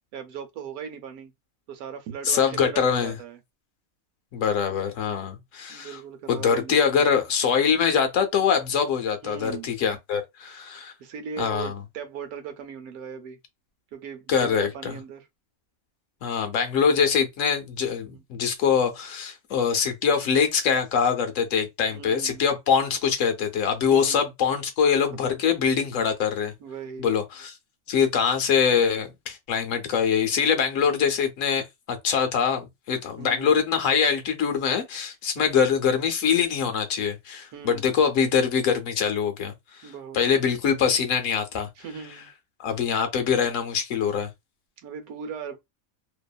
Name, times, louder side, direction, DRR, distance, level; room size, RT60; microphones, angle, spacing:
voice 1, 0.1-1.3 1.7-3.4 5.7-7.1 9.2-9.7 11.0-13.4 13.9-15.3 18.1-18.2 21.9-22.4 23.9-24.3 25.2-25.4 26.6-27.1 30.9-31.1 33.2-33.6 35.4-35.7 37.5-37.9 39.8-40.2 41.8-42.3 44.8-45.6, right 7 dB, 90° right, 1.1 m, -38 dB
voice 2, 2.3-3.1 4.3-6.0 6.3-10.9 11.4-11.7 14.3-15.0 16.2-26.5 27.0-27.5 27.9-39.5 40.1-41.7 42.6-44.3, left 7 dB, 70° left, 1.0 m, -23 dB
2.7 x 2.3 x 2.3 m
omnidirectional pair, 1.5 m